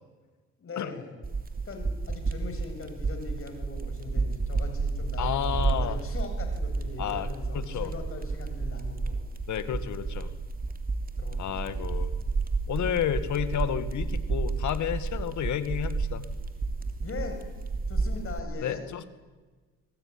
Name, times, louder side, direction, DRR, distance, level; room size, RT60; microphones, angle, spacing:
voice 1, 0.6-1.1 1.6-9.2 11.2-11.9 17.0-17.5 17.9-18.8, left 4 dB, 45° left, 5 dB, 7.5 m, -41 dB
sound 1, 1.2-18.4, right 4 dB, 30° right, 3.2 m, -31 dB
voice 2, 5.2-6.0 7.0-7.3 7.5-7.9 9.5-10.3 11.4-12.1 12.7-16.2 18.6-19.1, left 10 dB, 70° left, 12 dB, 2.2 m, -31 dB
26.0 x 20.5 x 10.0 m, 1.3 s
cardioid pair, 90°, 30 cm